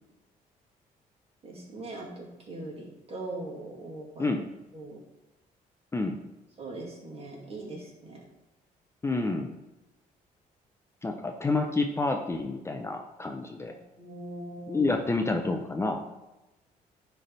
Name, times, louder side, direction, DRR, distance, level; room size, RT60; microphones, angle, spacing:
voice 1, 1.4-4.3 4.7-5.0 6.6-8.2 13.7-14.9, right 2 dB, 40° right, -3 dB, 2.3 m, -41 dB
voice 2, 9.0-9.5 11.0-13.7 14.7-16.0, left 3 dB, 15° left, 4 dB, 0.5 m, -29 dB
9.9 x 3.4 x 4.0 m, 1.0 s
cardioid pair, 105°, 15 cm